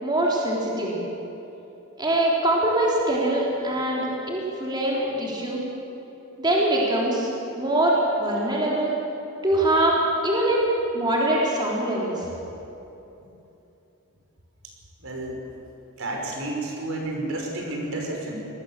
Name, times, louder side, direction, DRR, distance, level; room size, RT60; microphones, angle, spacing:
voice 1, 0.0-0.9 2.0-5.6 6.4-7.3 7.6-8.9 9.4-10.6 10.9-12.2, right 1 dB, 20° right, -4 dB, 3.8 m, -23 dB
voice 2, 15.0-15.5 16.0-18.4, right 2 dB, 65° right, 0 dB, 5.5 m, -31 dB
26.0 x 20.0 x 7.5 m, 2.9 s
head